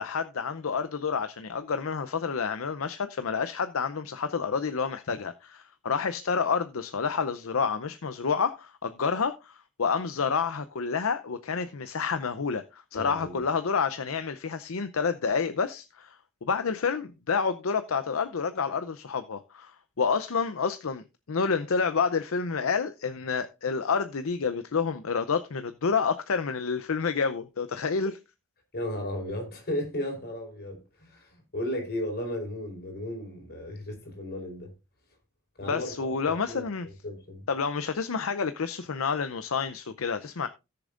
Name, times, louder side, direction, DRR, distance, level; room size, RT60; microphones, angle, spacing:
voice 1, 0.0-28.2 35.6-36.9 37.5-40.5, left 5 dB, 70° left, 0.6 m, -29 dB
voice 2, 12.9-13.4 28.7-34.7 35.6-36.1 36.5-37.4, left 1 dB, 50° left, 4.3 m, -35 dB
17.5 x 6.8 x 2.5 m
head